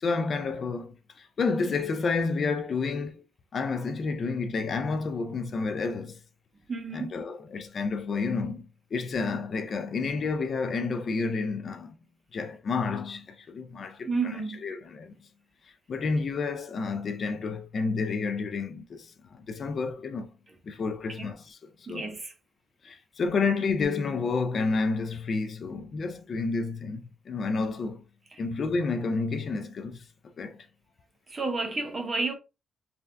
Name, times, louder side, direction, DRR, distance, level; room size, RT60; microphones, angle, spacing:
voice 1, 0.0-3.2 3.5-6.2 6.9-8.6 8.9-11.9 12.3-14.4 14.6-15.1 15.9-20.3 20.6-22.1 22.8-28.0 28.4-30.6, left 4 dB, 50° left, 0.4 m, -30 dB
voice 2, 6.7-7.1 14.1-14.6 21.2-21.3 21.9-22.3 31.3-32.3, right 3 dB, 30° right, 0.9 m, -31 dB
3.3 x 2.6 x 2.2 m
cardioid pair, 90°, 0 cm